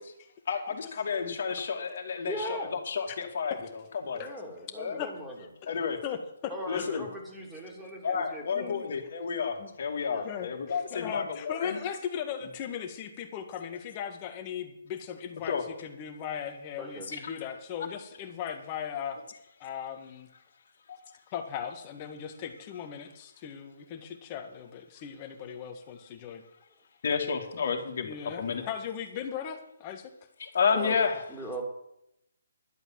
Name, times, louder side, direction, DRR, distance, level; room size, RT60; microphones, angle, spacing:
voice 1, 0.5-4.2 4.8-5.0 5.6-6.0 6.7-7.1 8.0-11.8 15.5-15.6 17.1-17.2 20.9-21.0 27.0-28.6 30.4-31.2, left 6 dB, 50° left, 2 dB, 2.6 m, -31 dB
voice 2, 2.3-2.7 4.1-5.4 6.5-8.9 10.1-10.3 16.8-17.1 30.7-31.0 31.3-31.6, equal, 5° right, -2 dB, 3.1 m, -39 dB
voice 3, 5.4-5.7 6.0-7.0 8.5-8.9 9.6-9.7 10.2-19.2 19.6-20.3 21.3-26.4 28.0-30.1, left 8 dB, 30° left, 5 dB, 1.8 m, -38 dB
12.0 x 8.0 x 7.6 m, 0.79 s
figure-of-eight pair, 140°, 0 cm